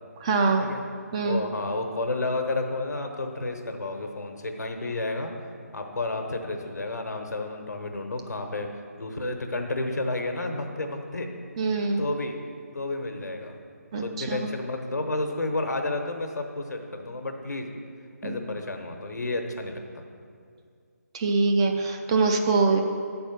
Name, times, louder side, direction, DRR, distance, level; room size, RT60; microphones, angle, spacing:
voice 1, 0.2-0.7 1.1-1.4 11.6-12.0 13.9-14.4 18.2-18.4 21.1-22.8, right 3 dB, 20° right, 4 dB, 0.4 m, -24 dB
voice 2, 1.2-5.3 5.7-8.7 9.0-11.3 12.0-12.4 12.7-13.6 14.0-17.7 18.2-20.1, left 2 dB, 80° left, 4 dB, 1.0 m, -31 dB
9.1 x 4.3 x 5.8 m, 2.3 s
figure-of-eight pair, 155°, 9 cm